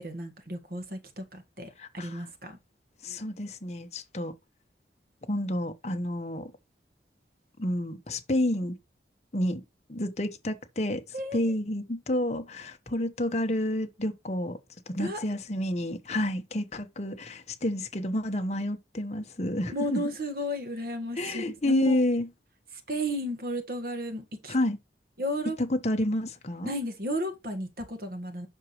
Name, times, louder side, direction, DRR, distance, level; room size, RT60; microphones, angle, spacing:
voice 1, 0.0-2.6 11.1-11.4 15.0-15.2 19.7-22.0 22.9-24.5 25.2-25.6 26.6-28.5, equal, 55° right, 1.6 m, -33 dB
voice 2, 1.8-2.2 3.0-4.3 5.3-6.5 7.6-8.7 9.3-9.6 9.9-11.0 11.3-14.6 14.9-20.0 21.2-22.3 24.5-24.8 25.6-26.7, left 1 dB, 40° left, 1.0 m, -29 dB
8.0 x 6.2 x 3.1 m
head